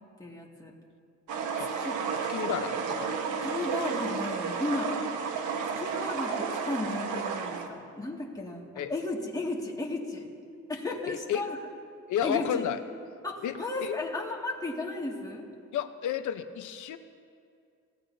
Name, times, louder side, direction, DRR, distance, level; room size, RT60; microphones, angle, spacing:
voice 1, 0.2-0.7 1.6-2.0 2.4-2.5 3.4-4.9 5.8-10.3 10.7-11.6 12.2-12.6 13.2-15.5, left 2 dB, 10° left, -2 dB, 2.2 m, -34 dB
sound 1, 1.3-7.7, right 5 dB, 90° right, 1.4 m, -32 dB
voice 2, 2.3-3.2 8.8-8.9 11.1-11.4 12.1-12.8 13.4-14.0 15.7-17.0, left 9 dB, 80° left, 9 dB, 0.9 m, -32 dB
30.0 x 17.0 x 2.8 m, 2.3 s
cardioid pair, 130°, 29 cm